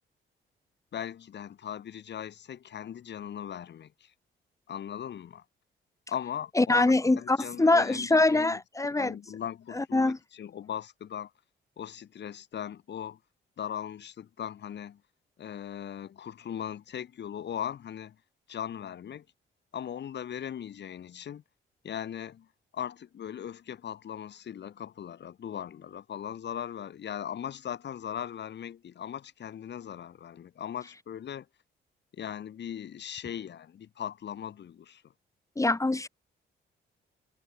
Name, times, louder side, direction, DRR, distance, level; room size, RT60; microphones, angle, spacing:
voice 1, 0.9-4.1 4.7-5.4 6.1-6.8 7.2-8.6 8.9-11.3 11.8-13.2 13.6-15.0 15.4-18.2 18.5-19.2 19.7-21.4 21.8-22.5 22.7-31.5 32.1-35.0, left 9 dB, 60° left, 5.9 m, -39 dB
voice 2, 6.6-9.2 9.7-10.2 35.6-36.1, left 2 dB, 15° left, 4.4 m, -24 dB
cardioid pair, 90°, 20 cm